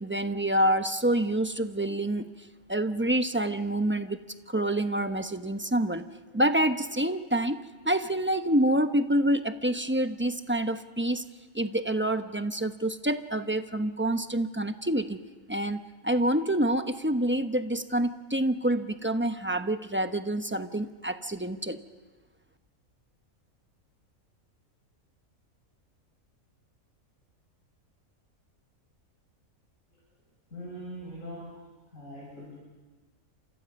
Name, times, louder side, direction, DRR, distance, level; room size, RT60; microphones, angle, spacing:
voice 1, 0.0-2.2 2.7-4.2 4.5-6.0 6.3-7.6 7.8-11.2 11.5-15.2 15.5-21.8, right 1 dB, 10° right, 8 dB, 0.8 m, -27 dB
voice 2, 30.5-31.4 31.9-32.5, equal, 65° left, -6 dB, 7.3 m, -42 dB
30.0 x 27.5 x 5.4 m, 1.3 s
omnidirectional pair, 1.5 m